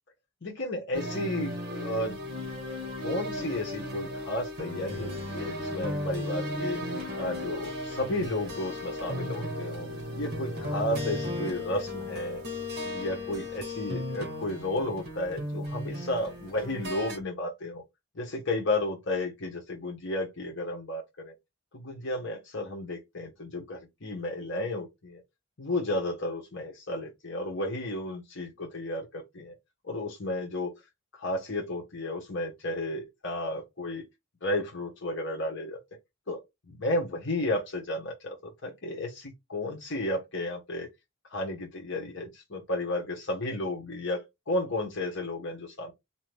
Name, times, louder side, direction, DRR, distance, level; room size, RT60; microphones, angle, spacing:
voice 1, 0.4-2.2 3.0-6.8 7.2-9.9 10.1-12.4 12.8-17.8 18.1-21.3 21.7-25.2 25.6-29.5 29.8-30.7 31.2-34.0 34.4-35.8 36.3-36.4 36.7-40.9 41.3-45.9, left 1 dB, 55° left, 1.2 m, -33 dB
sound 1, 0.9-17.2, left 1 dB, 50° right, 1.6 m, -35 dB
3.9 x 3.0 x 3.3 m
head